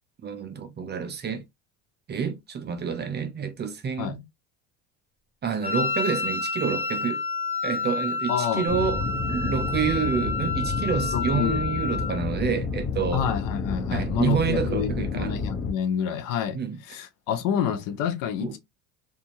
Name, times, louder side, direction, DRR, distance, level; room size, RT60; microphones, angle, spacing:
voice 1, 0.2-1.4 2.1-4.2 5.4-7.2 7.6-13.3 13.9-15.3 16.5-16.8 18.4-18.5, right 6 dB, 30° right, 0.6 m, -28 dB
Wind instrument woodwind instrument, 5.6-12.2, left 4 dB, 5° left, 1.3 m, -29 dB
voice 2, 8.3-8.7 11.1-11.6 13.1-18.6, left 9 dB, 65° left, 0.8 m, -28 dB
sound 1, 8.7-15.7, left 4 dB, 35° left, 0.9 m, -30 dB
2.8 x 2.6 x 2.5 m
supercardioid pair, 95°, 36 cm